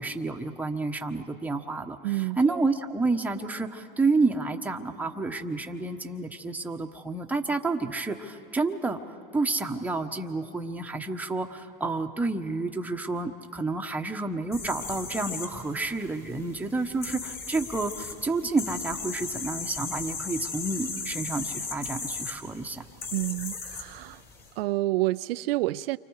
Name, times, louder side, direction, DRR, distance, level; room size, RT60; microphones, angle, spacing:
voice 1, 0.0-9.0 9.3-22.8, right 3 dB, 5° right, 1.1 m, -29 dB
voice 2, 2.0-2.6 23.1-24.2 24.6-26.0, right 19 dB, 75° right, 0.5 m, -29 dB
sound 1, 14.5-24.5, left 4 dB, 35° left, 4.4 m, -37 dB
29.5 x 25.0 x 4.8 m
supercardioid pair, 115°, 29 cm